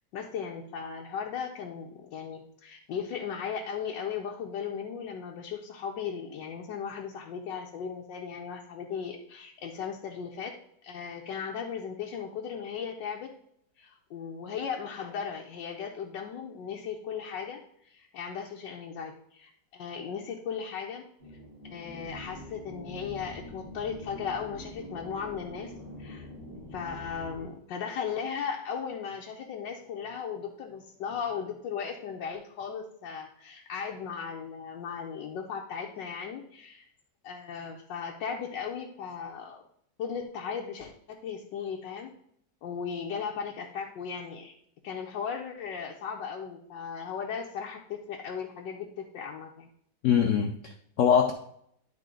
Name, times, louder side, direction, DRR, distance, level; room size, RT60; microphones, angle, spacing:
voice 1, 0.1-10.5 10.8-13.3 13.8-21.0 21.6-25.7 26.0-26.3 26.7-36.9 37.2-39.6 40.0-42.1 42.6-44.5 44.8-49.7, left 6 dB, 90° left, 0 dB, 1.4 m, -37 dB
sound 1, 21.2-27.4, left 1 dB, 30° right, 3.0 m, -44 dB
voice 2, 50.0-51.3, left 8 dB, 70° left, 5 dB, 0.7 m, -23 dB
10.5 x 4.2 x 3.7 m, 0.69 s
omnidirectional pair, 1.9 m